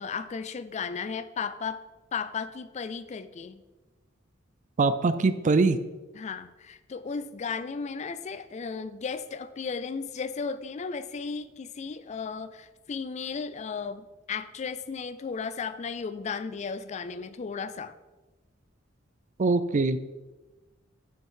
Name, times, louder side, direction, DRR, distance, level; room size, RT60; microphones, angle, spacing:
voice 1, 0.0-1.8 2.1-3.6 6.1-18.0, left 5 dB, 35° left, 13 dB, 0.4 m, -35 dB
voice 2, 4.8-5.8 19.4-20.0, right 3 dB, 40° right, 12 dB, 0.4 m, -22 dB
7.1 x 6.4 x 4.7 m, 1.1 s
head